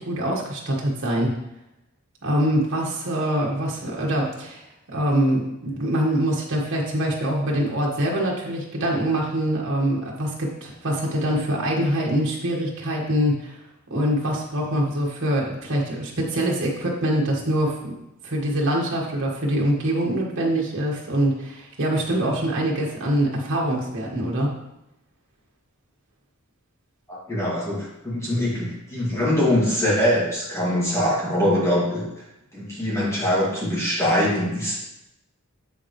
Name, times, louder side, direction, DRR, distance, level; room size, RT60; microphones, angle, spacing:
voice 1, 0.0-1.3 2.2-4.6 4.9-13.5 13.9-18.0 18.2-24.5, right 1 dB, 60° right, -2 dB, 1.6 m, -24 dB
voice 2, 27.1-32.3 32.5-34.8, left 1 dB, 15° left, -7 dB, 2.3 m, -23 dB
7.7 x 7.2 x 3.2 m, 0.89 s
head